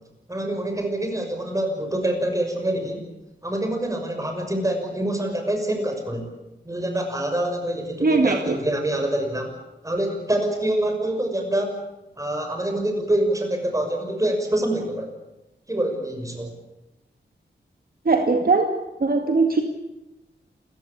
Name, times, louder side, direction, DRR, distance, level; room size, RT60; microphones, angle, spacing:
voice 1, 0.3-3.0 3.4-6.3 6.6-9.6 9.8-11.8 12.2-15.1 15.7-16.5, right 1 dB, 15° right, 4 dB, 6.0 m, -25 dB
voice 2, 8.0-8.6 18.1-18.7 19.0-19.6, right 3 dB, 55° right, 4 dB, 2.2 m, -20 dB
28.5 x 15.0 x 8.7 m, 0.97 s
wide cardioid pair, 110°, 18 cm